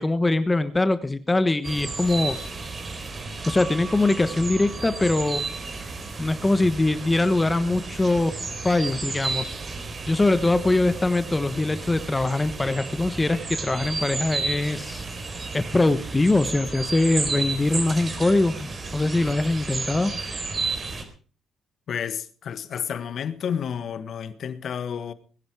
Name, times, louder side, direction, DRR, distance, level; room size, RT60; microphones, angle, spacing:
voice 1, 0.0-2.4 3.4-5.4 6.2-8.4 8.6-9.5 10.1-15.1 15.5-20.1, left 2 dB, 20° left, 1.2 m, -22 dB
sound 1, 1.6-21.0, right 3 dB, 35° right, 3.8 m, -33 dB
voice 2, 21.9-25.1, left 8 dB, 60° left, 1.5 m, -30 dB
21.5 x 10.5 x 4.8 m
cardioid pair, 90°, 0 cm